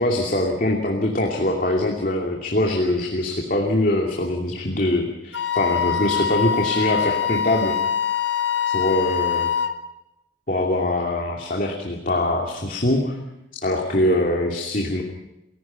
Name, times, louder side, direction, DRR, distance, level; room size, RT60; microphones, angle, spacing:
voice 1, 0.0-7.8 8.7-9.5 10.5-13.2 13.6-15.0, left 1 dB, 50° left, 1 dB, 2.7 m, -23 dB
Wind instrument woodwind instrument, 5.3-9.8, left 8 dB, 85° left, 1.7 m, -24 dB
28.5 x 16.5 x 5.9 m, 0.93 s
head